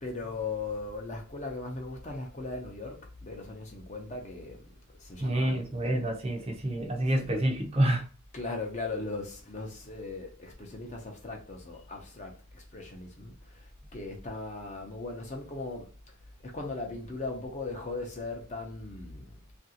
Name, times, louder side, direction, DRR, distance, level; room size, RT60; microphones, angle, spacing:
voice 1, 0.0-4.7 5.0-5.8 7.2-7.4 8.3-15.9 16.4-19.4, left 3 dB, 30° left, 0.6 m, -38 dB
voice 2, 5.2-8.0, right 1 dB, 30° right, 0.6 m, -28 dB
2.9 x 2.5 x 2.8 m
head